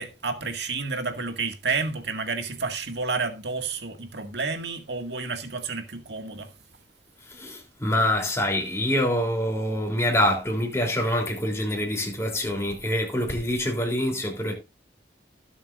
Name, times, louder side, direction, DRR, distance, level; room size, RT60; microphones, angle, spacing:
voice 1, 0.0-6.5, right 4 dB, 75° right, 2.0 m, -30 dB
voice 2, 7.3-14.6, left 1 dB, 15° left, 3.3 m, -25 dB
18.0 x 7.3 x 2.5 m
head